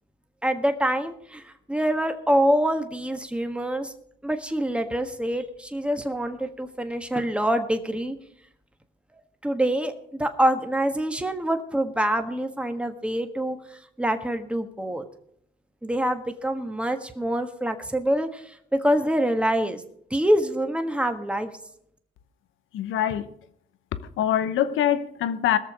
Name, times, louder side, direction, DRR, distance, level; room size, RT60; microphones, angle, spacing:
voice 1, 0.4-3.9 4.2-8.1 9.4-15.0 15.8-19.8 20.1-21.5, right 1 dB, 5° right, 1.4 m, -25 dB
voice 2, 22.7-23.3 24.2-25.6, left 10 dB, 80° left, 0.9 m, -24 dB
20.5 x 6.9 x 5.1 m
cardioid pair, 90°, 20 cm